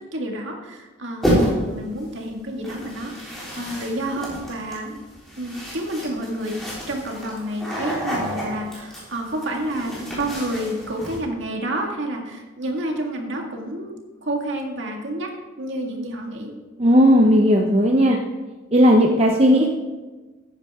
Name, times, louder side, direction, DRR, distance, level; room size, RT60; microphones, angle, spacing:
voice 1, 0.1-5.0 5.4-6.5 6.9-14.0 14.2-15.3 15.6-16.5, right 1 dB, 60° right, 1 dB, 2.0 m, -29 dB
sound 1, 1.2-1.8 2.6-11.2, equal, ahead, 3.6 m, -29 dB
voice 2, 16.8-18.2 18.7-19.7, equal, 30° right, 1 dB, 0.7 m, -15 dB
14.0 x 9.6 x 3.6 m, 1.2 s
head